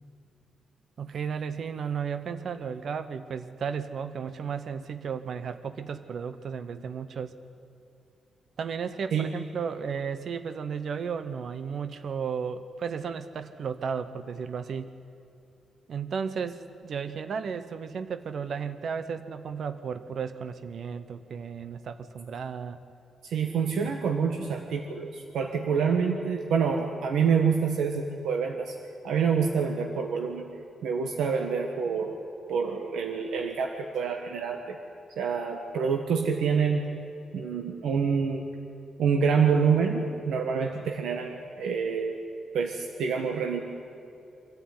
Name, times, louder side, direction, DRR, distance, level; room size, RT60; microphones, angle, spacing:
voice 1, 1.0-7.4 8.6-14.9 15.9-22.8, right 6 dB, 50° right, 11 dB, 0.9 m, -34 dB
voice 2, 23.2-28.7 29.0-30.4 30.8-32.1 32.5-34.8 35.2-36.8 37.3-38.4 39.0-42.1 42.5-43.6, right 6 dB, 90° right, 3 dB, 1.6 m, -27 dB
25.0 x 14.5 x 9.6 m, 2.6 s
wide cardioid pair, 175°, 0 cm